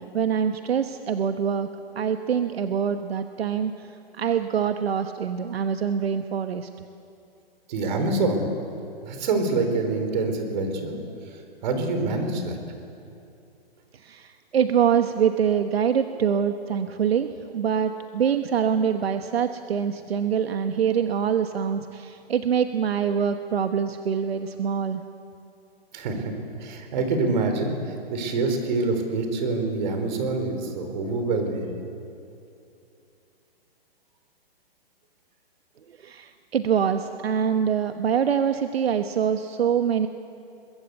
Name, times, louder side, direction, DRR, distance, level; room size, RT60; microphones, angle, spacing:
voice 1, 0.0-1.7 1.9-3.9 4.1-6.7 13.9-25.0 36.0-40.1, right 8 dB, 80° right, 8 dB, 1.2 m, -24 dB
voice 2, 7.7-8.5 9.0-11.0 11.6-12.6 25.9-26.3 26.6-31.7, right 3 dB, 45° right, 6 dB, 4.3 m, -26 dB
23.0 x 21.0 x 8.2 m, 2.7 s
hypercardioid pair, 155°, 31 cm